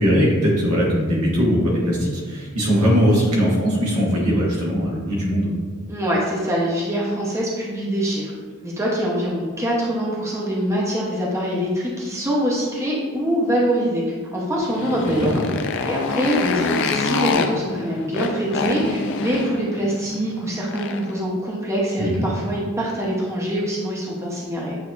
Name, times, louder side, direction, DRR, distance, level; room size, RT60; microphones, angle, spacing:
voice 1, 0.0-5.5 15.0-15.4 22.0-22.3, equal, 85° right, -5 dB, 1.4 m, -20 dB
voice 2, 5.9-8.3 8.6-15.5 15.8-24.8, equal, 15° right, -5 dB, 0.7 m, -24 dB
Motorcycle, 14.6-21.2, left 4 dB, 55° left, 0.4 m, -26 dB
7.8 x 2.8 x 2.4 m, 1.5 s
head